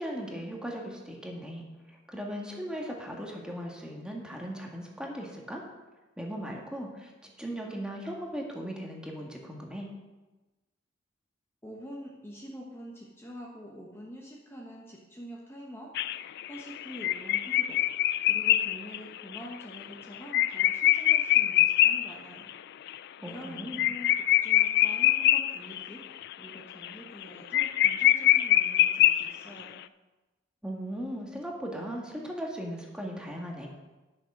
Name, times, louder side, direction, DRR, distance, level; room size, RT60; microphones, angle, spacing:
voice 1, 0.0-1.6 2.1-5.6 6.2-9.9 23.2-23.8 30.6-33.7, equal, 5° right, -1 dB, 1.6 m, -38 dB
voice 2, 11.6-16.2 16.5-22.5 23.2-29.7, equal, 15° left, -3 dB, 1.2 m, -46 dB
sound 1, 15.9-22.1 22.5-22.6 22.9-23.0 23.3-25.9 26.2-26.5 26.8-26.9 27.2-27.3 27.5-29.6, left 13 dB, 55° left, 0.3 m, -24 dB
10.0 x 6.4 x 6.0 m, 1.1 s
head